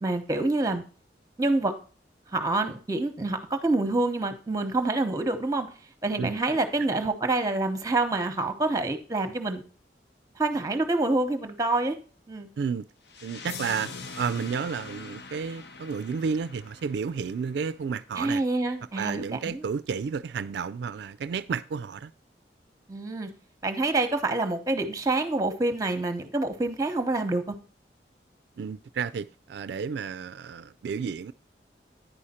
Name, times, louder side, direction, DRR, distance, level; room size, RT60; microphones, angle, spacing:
voice 1, 0.0-0.8 1.4-1.7 2.3-5.7 6.0-9.6 10.4-12.0 12.3-12.5 18.2-19.6 22.9-23.3 23.6-27.6, right 2 dB, 20° right, 0.8 m, -27 dB
sound 1, 13.1-18.0, left 4 dB, 70° left, 0.8 m, -43 dB
voice 2, 13.2-18.4 19.0-22.1 28.6-31.3, right 6 dB, 75° right, 0.3 m, -31 dB
10.0 x 4.9 x 4.2 m
head